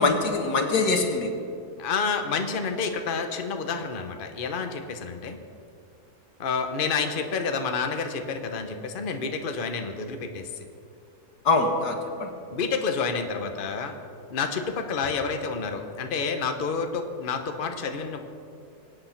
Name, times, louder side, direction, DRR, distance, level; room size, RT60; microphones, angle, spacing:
voice 1, 0.0-1.3 11.4-12.3, left 3 dB, 80° left, 4 dB, 2.1 m, -23 dB
voice 2, 1.8-5.4 6.4-10.6 12.5-13.9 14.3-18.2, left 5 dB, 40° left, 6 dB, 1.1 m, -29 dB
24.0 x 8.7 x 5.9 m, 2.5 s
omnidirectional pair, 1.7 m